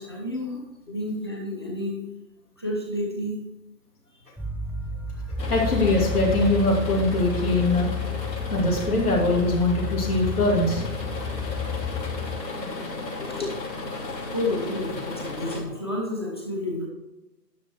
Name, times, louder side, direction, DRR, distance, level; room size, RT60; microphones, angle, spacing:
voice 1, 0.0-2.0 2.6-3.4 4.1-4.2 5.1-5.2 13.3-13.4 14.3-16.9, left 1 dB, 15° left, -3 dB, 1.0 m, -30 dB
sound 1, 4.4-12.4, left 5 dB, 5° right, 0.3 m, -31 dB
sound 2, 5.4-15.6, left 2 dB, 80° left, 2.9 m, -35 dB
voice 2, 5.5-7.9 8.5-10.8 12.5-13.5 14.0-14.1, left 2 dB, 60° left, -2 dB, 2.7 m, -23 dB
10.5 x 6.5 x 4.5 m, 0.96 s
hypercardioid pair, 175°, 50 cm